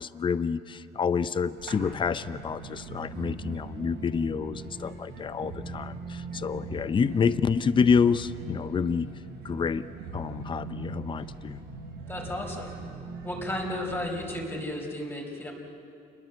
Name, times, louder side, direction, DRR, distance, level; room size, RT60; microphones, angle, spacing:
voice 1, 0.0-9.1 9.4-9.9 10.1-11.6, left 6 dB, 30° left, 14 dB, 0.7 m, -28 dB
sound 1, 1.6-14.4, right 4 dB, 80° right, 7.0 m, -41 dB
voice 2, 12.1-12.7 13.2-15.5, left 1 dB, 15° left, 0 dB, 4.6 m, -33 dB
27.5 x 21.5 x 7.8 m, 2.6 s
cardioid pair, 110°, 17 cm